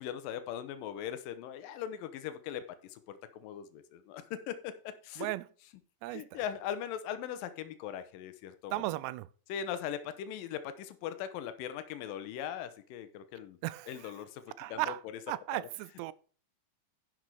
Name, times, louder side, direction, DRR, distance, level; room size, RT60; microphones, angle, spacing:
voice 1, 0.0-5.3 6.1-8.8 9.5-13.6 13.9-14.4 14.7-14.9 15.5-15.7, left 9 dB, 75° left, 2.1 m, -40 dB
voice 2, 6.0-6.4 8.7-9.3 13.6-14.1 14.6-15.0 15.3-16.1, right 18 dB, 85° right, 2.7 m, -36 dB
11.0 x 6.2 x 4.8 m
omnidirectional pair, 4.8 m